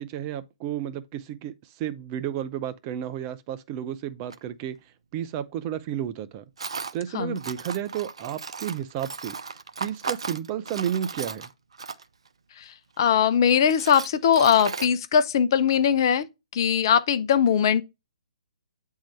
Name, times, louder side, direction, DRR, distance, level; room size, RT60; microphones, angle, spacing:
voice 1, 0.0-1.5 1.8-4.8 5.1-6.4 6.9-9.4 9.8-11.5, right 10 dB, 30° right, 0.7 m, -32 dB
Tools, 4.3-4.4 6.6-7.0 7.4-12.3 13.0-13.1 13.5-14.9, right 5 dB, 65° right, 0.7 m, -36 dB
voice 2, 13.0-16.3 16.5-17.8, left 8 dB, 45° left, 0.8 m, -20 dB
8.8 x 3.8 x 4.4 m
figure-of-eight pair, 130°, 3 cm